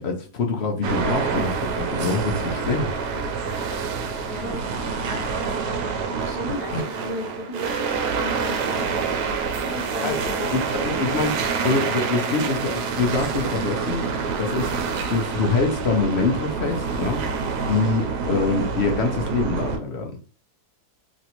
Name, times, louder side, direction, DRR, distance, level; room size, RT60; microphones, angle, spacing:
voice 1, 0.0-2.9 6.7-6.8 9.6-9.7 10.0-11.3 11.6-14.1 14.4-14.7 15.1-17.2 17.7-20.1, left 4 dB, 60° left, 2 dB, 0.7 m, -25 dB
sound 1, 0.8-19.8, right 5 dB, 85° right, 1.2 m, -27 dB
voice 2, 4.3-4.7 5.0-9.1 9.5-11.3, left 1 dB, 20° right, -4 dB, 1.2 m, -36 dB
3.0 x 2.6 x 2.8 m, 0.37 s
omnidirectional pair, 1.7 m